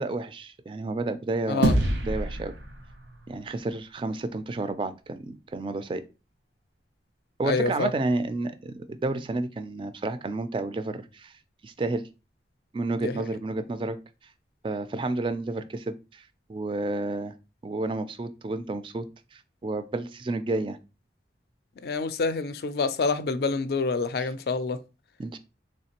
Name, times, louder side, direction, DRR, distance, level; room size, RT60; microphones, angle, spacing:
voice 1, 0.0-1.8 2.1-2.5 3.3-6.0 7.4-11.3 11.6-12.0 12.7-14.0 14.6-16.2 16.5-17.3 17.6-19.1 19.3-20.8 24.2-24.3 25.2-25.4, right 2 dB, 25° right, 0.3 m, -31 dB
sound 1, 1.6-4.2, right 1 dB, 80° right, 0.8 m, -28 dB
voice 2, 7.4-7.9 13.0-13.1 21.8-24.8, left 4 dB, 55° left, 0.4 m, -27 dB
3.5 x 3.2 x 2.9 m
head